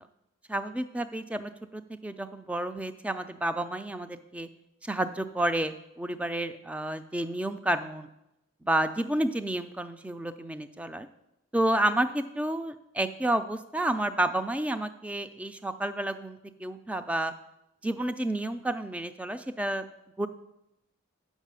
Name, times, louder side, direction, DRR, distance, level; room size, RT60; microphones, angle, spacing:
voice 1, 0.5-4.5 4.8-8.1 8.6-11.1 11.5-17.3 17.8-19.8 20.2-20.3, right 1 dB, 5° right, 10 dB, 0.3 m, -30 dB
7.3 x 5.5 x 6.8 m, 0.87 s
head